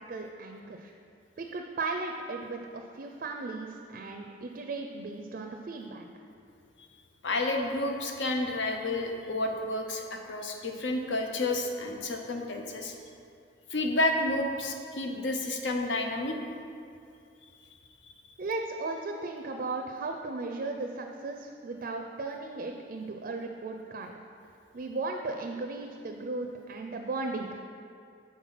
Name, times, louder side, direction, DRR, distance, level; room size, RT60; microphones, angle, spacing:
voice 1, 0.1-0.9 1.4-6.1 18.4-24.1 24.7-27.6, right 3 dB, 50° right, 4 dB, 0.4 m, -36 dB
voice 2, 7.2-12.9 13.7-16.4, left 2 dB, 85° left, 3 dB, 0.7 m, -30 dB
5.9 x 4.3 x 5.6 m, 2.4 s
head